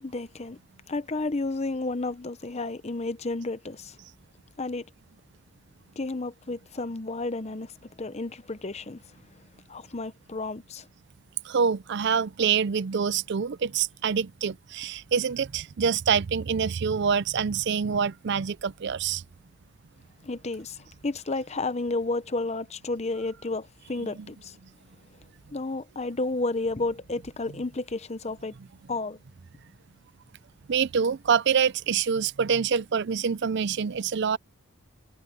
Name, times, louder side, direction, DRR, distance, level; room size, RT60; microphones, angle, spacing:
voice 1, 0.0-0.6 0.9-4.0 4.6-4.8 6.0-7.7 8.0-9.0 9.7-10.9 20.2-24.6 25.5-28.5 28.9-29.2, left 2 dB, 30° left, 0.7 m, -31 dB
voice 2, 11.5-19.2 24.0-24.3 30.7-34.4, right 6 dB, 50° right, 0.4 m, -26 dB
head